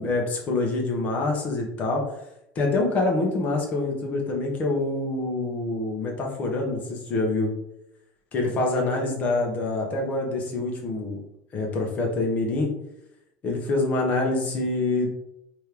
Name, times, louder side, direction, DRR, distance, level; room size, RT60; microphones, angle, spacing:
voice 1, 0.0-2.0 2.5-7.5 8.3-11.2 11.5-12.7 13.4-15.1, left 2 dB, 35° left, 0 dB, 1.3 m, -26 dB
4.4 x 3.1 x 3.5 m, 0.81 s
supercardioid pair, 135°, 5 cm